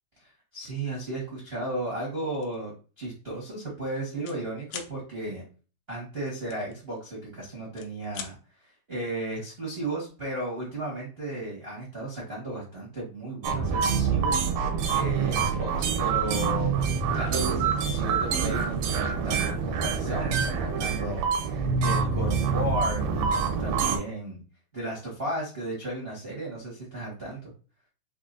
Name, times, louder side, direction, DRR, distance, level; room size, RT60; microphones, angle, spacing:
voice 1, 0.2-5.4 5.9-8.3 8.9-16.8 17.1-24.4 24.7-27.5, right 1 dB, 60° right, -4 dB, 0.6 m, -35 dB
sound 1, 2.4-2.6 3.0-3.2 3.5-4.4 4.7-4.9 6.5-7.3 7.6-8.3, left 8 dB, 75° left, 2.0 m, -41 dB
sound 2, 13.4-24.0, right 6 dB, 90° right, 2.7 m, -26 dB
6.1 x 3.1 x 2.6 m, 0.36 s
omnidirectional pair, 4.3 m